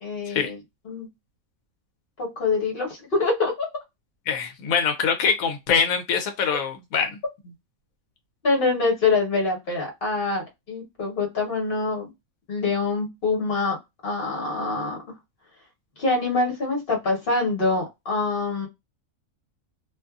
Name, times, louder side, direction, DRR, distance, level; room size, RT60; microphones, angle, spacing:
voice 1, 0.0-0.6 0.8-1.1 2.2-3.7 8.4-12.1 12.5-13.8 14.0-15.0 16.0-18.7, left 3 dB, 45° left, 1.2 m, -25 dB
voice 2, 4.3-7.1, left 6 dB, 85° left, 1.0 m, -24 dB
2.6 x 2.5 x 2.3 m
omnidirectional pair, 1.4 m